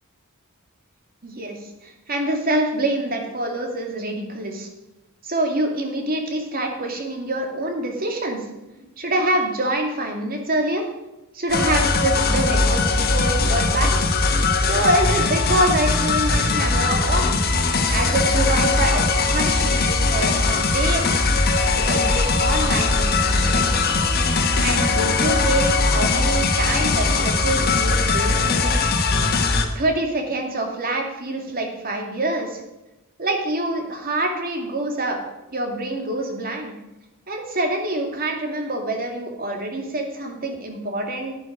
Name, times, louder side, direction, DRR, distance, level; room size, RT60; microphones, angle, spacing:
voice 1, 1.2-4.7 5.2-8.4 8.7-10.9 11.3-13.9 14.6-17.4 17.9-21.2 21.7-23.9 24.6-28.9 29.7-32.6 33.2-35.2 35.5-36.7 37.3-41.3, right 1 dB, 45° right, 3 dB, 2.2 m, -26 dB
sound 1, 11.5-29.7, left 3 dB, 45° left, 1.4 m, -20 dB
11.5 x 10.5 x 5.0 m, 0.98 s
head